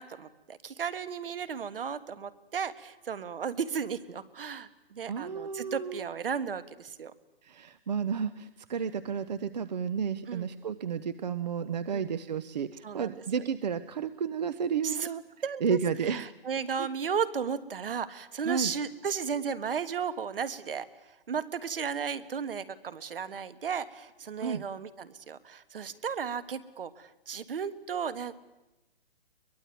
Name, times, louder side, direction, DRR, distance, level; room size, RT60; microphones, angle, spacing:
voice 1, 0.0-7.1 10.3-10.5 11.9-12.0 12.8-13.4 14.8-15.1 15.4-15.8 16.1-20.9 21.3-28.3, right 6 dB, 60° right, 13 dB, 1.7 m, -34 dB
voice 2, 5.1-6.1 7.4-15.2 15.6-16.2 16.8-16.9 18.4-18.7 24.4-24.6, right 6 dB, 45° right, 14 dB, 0.8 m, -32 dB
23.0 x 21.5 x 9.2 m, 1.0 s
hypercardioid pair, 175°, 31 cm